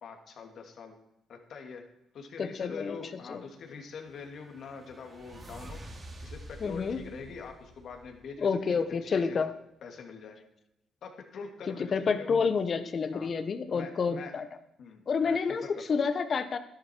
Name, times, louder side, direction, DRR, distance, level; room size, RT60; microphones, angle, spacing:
voice 1, 0.0-1.0 1.3-1.8 2.1-5.8 6.2-9.4 9.8-10.5 11.0-12.5 13.1-13.3 13.7-14.3 14.8-15.8, left 5 dB, 65° left, 3 dB, 2.5 m, -44 dB
voice 2, 2.4-3.0 3.3-3.4 6.6-7.0 8.4-9.5 11.7-14.4 15.1-15.6 15.9-16.6, left 5 dB, 45° left, 11 dB, 1.1 m, -29 dB
sound 1, 3.6-8.6, right 1 dB, 35° right, 2.7 m, -48 dB
13.0 x 11.0 x 4.6 m, 0.82 s
cardioid pair, 90°, 0 cm